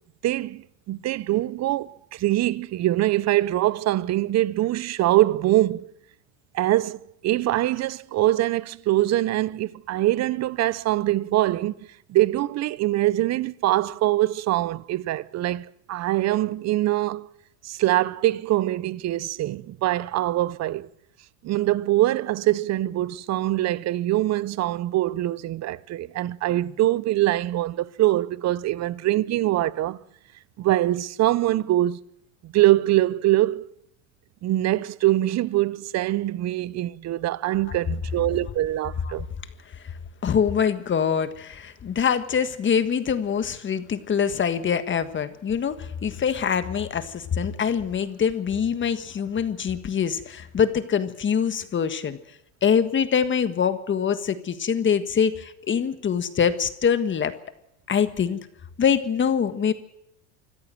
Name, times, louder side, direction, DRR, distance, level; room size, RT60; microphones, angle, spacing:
voice 1, 0.2-5.9 6.5-11.7 12.1-17.3 17.6-20.9 21.4-30.0 30.6-32.0 32.4-33.7 34.4-39.3, right 15 dB, 40° right, 0.8 m, -23 dB
voice 2, 40.2-52.2 52.6-57.3 57.9-58.4 58.8-59.7, left 7 dB, 30° left, 1.5 m, -24 dB
25.5 x 14.5 x 7.7 m
supercardioid pair, 115°, 41 cm